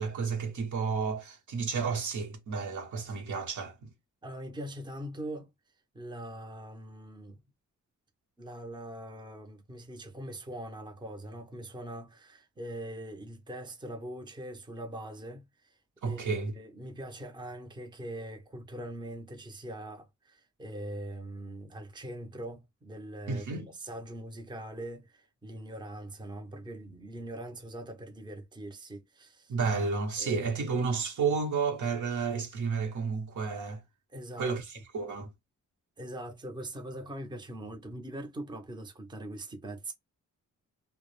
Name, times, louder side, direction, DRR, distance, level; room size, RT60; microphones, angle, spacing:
voice 1, 0.0-3.9 16.0-16.5 23.3-23.7 29.5-33.8 34.4-35.3, right 5 dB, 65° right, 1.0 m, -31 dB
voice 2, 4.2-5.5 5.9-7.4 8.4-15.8 16.0-29.5 30.2-30.5 34.1-34.6 36.0-39.9, right 1 dB, 15° right, 0.7 m, -42 dB
2.3 x 2.1 x 3.0 m
cardioid pair, 85°, 32 cm